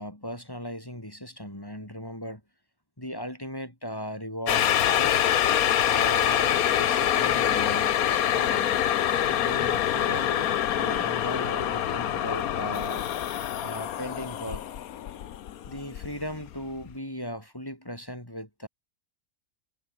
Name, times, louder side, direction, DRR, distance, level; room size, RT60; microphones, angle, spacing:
voice 1, 0.0-2.4 3.0-5.3 5.9-8.7 9.3-13.0 13.6-14.6 15.7-18.7, equal, 15° left, 4.7 m, -37 dB
sound 1, 4.5-16.5 16.9-17.0, left 11 dB, 90° left, 1.4 m, -25 dB
omnidirectional pair, 1.5 m